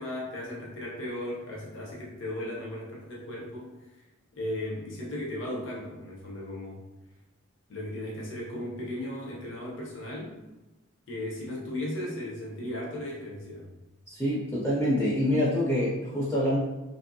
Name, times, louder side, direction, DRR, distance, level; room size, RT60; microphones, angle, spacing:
voice 1, 0.0-3.7 4.3-6.8 7.7-10.4 11.1-13.7, left 1 dB, 65° left, -4 dB, 0.7 m, -36 dB
voice 2, 14.1-16.6, equal, 15° left, -7 dB, 0.4 m, -26 dB
3.0 x 2.6 x 2.6 m, 1.1 s
head